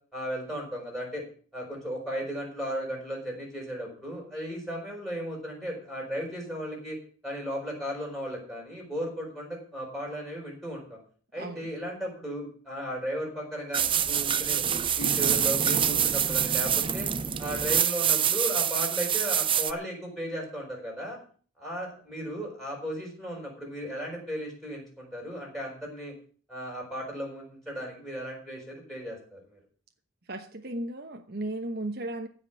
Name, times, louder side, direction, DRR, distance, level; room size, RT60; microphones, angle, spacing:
voice 1, 0.1-1.2 1.5-7.0 7.2-11.0 11.3-14.6 15.0-17.1 17.4-21.2 21.6-26.1 26.5-29.6, equal, ahead, 5.9 m, -35 dB
voice 2, 11.4-11.7 30.3-32.3, right 1 dB, 45° right, 1.1 m, -35 dB
sound 1, 13.7-19.7, right 9 dB, 25° right, 0.5 m, -26 dB
15.5 x 5.6 x 9.6 m
head